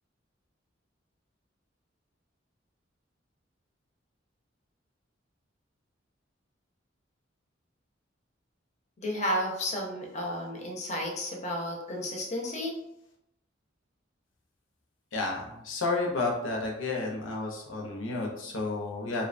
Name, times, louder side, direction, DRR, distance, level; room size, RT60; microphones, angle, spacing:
voice 1, 9.0-12.8, left 1 dB, 35° left, -1 dB, 0.5 m, -32 dB
voice 2, 15.1-19.3, left 3 dB, 85° left, 0 dB, 0.6 m, -31 dB
2.6 x 2.1 x 2.5 m, 0.81 s
head